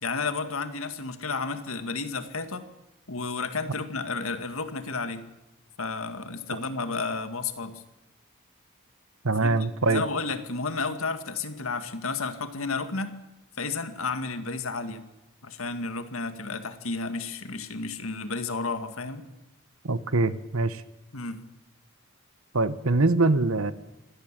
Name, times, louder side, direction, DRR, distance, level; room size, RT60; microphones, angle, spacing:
voice 1, 0.0-2.6 3.1-5.2 5.8-7.8 9.4-13.2 13.6-15.0 15.4-19.2 21.1-21.4, left 4 dB, 75° left, 9 dB, 2.1 m, -32 dB
voice 2, 9.2-10.0 19.8-20.8 22.5-23.7, right 3 dB, 75° right, 14 dB, 1.2 m, -23 dB
26.5 x 17.0 x 7.6 m, 1.0 s
head